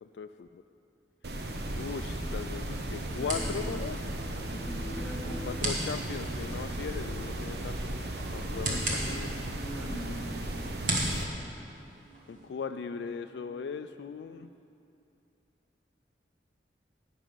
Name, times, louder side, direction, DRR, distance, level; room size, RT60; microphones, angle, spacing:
voice 1, 0.0-0.6 1.8-4.0 5.4-7.9 8.3-9.3 12.3-14.5, left 6 dB, 75° left, 8 dB, 0.3 m, -38 dB
sound 1, 1.2-11.2, right 1 dB, 65° right, 1.0 m, -36 dB
sound 2, 1.5-12.5, right 1 dB, 50° right, 1.9 m, -39 dB
Singing, 2.9-14.6, equal, 30° right, 0.9 m, -51 dB
voice 2, 3.1-3.7 4.5-5.5 8.6-10.3, equal, 5° left, -3 dB, 1.3 m, -42 dB
11.0 x 6.1 x 9.0 m, 2.6 s
head